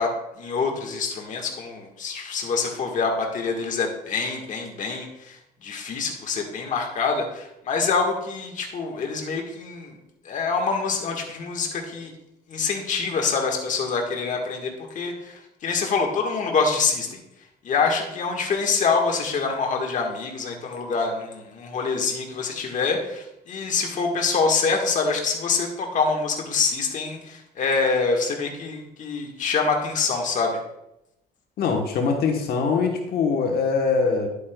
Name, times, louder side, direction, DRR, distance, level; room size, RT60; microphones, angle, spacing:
voice 1, 0.0-10.0 10.2-12.1 12.5-17.2 17.6-30.6, left 4 dB, 50° left, 2 dB, 1.5 m, -25 dB
voice 2, 31.6-34.3, left 5 dB, 65° left, 3 dB, 1.2 m, -23 dB
10.5 x 8.4 x 2.3 m, 0.85 s
cardioid pair, 110°, 17 cm